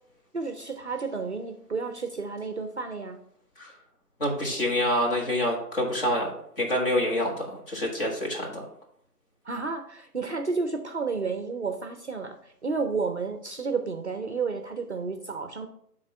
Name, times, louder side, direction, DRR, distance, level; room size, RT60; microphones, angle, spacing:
voice 1, 0.3-3.2 9.4-15.7, right 4 dB, 45° right, 6 dB, 0.5 m, -31 dB
voice 2, 4.2-8.6, left 1 dB, 35° left, -1 dB, 1.5 m, -27 dB
11.0 x 3.7 x 3.3 m, 0.68 s
hypercardioid pair, 170°, 48 cm